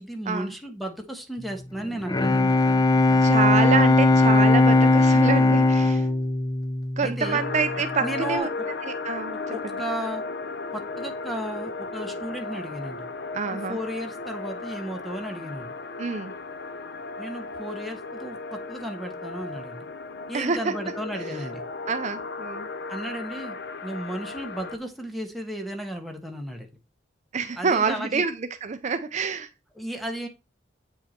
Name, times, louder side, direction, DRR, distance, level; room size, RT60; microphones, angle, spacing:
voice 1, 0.0-2.5 7.0-7.4 8.0-8.7 9.5-10.2 10.7-13.0 13.5-15.7 17.2-19.9 20.3-21.6 22.9-23.5 23.8-26.7 27.6-28.2 29.7-30.3, right 1 dB, ahead, 1.4 m, -34 dB
Bowed string instrument, 1.8-7.6, left 2 dB, 20° left, 0.4 m, -19 dB
voice 2, 3.2-6.1 7.0-8.5 9.0-9.4 13.3-13.8 16.0-16.3 20.3-20.7 21.9-22.7 27.3-28.3 28.6-29.5, right 5 dB, 40° right, 0.5 m, -26 dB
sound 1, 7.2-24.8, left 3 dB, 65° left, 0.6 m, -35 dB
8.1 x 5.5 x 4.3 m
head